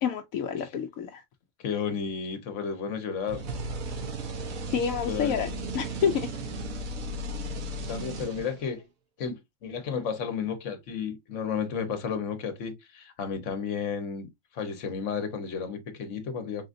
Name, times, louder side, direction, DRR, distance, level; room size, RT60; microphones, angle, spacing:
voice 1, 0.0-1.2 4.7-5.5 5.7-6.3, left 7 dB, 80° left, 1.0 m, -28 dB
voice 2, 1.6-3.4 5.1-5.3 7.9-8.8 9.2-14.3 14.5-16.7, left 6 dB, 65° left, 1.3 m, -32 dB
sound 1, 3.3-8.8, right 1 dB, 85° right, 1.4 m, -35 dB
4.1 x 3.9 x 2.5 m
omnidirectional pair, 1.4 m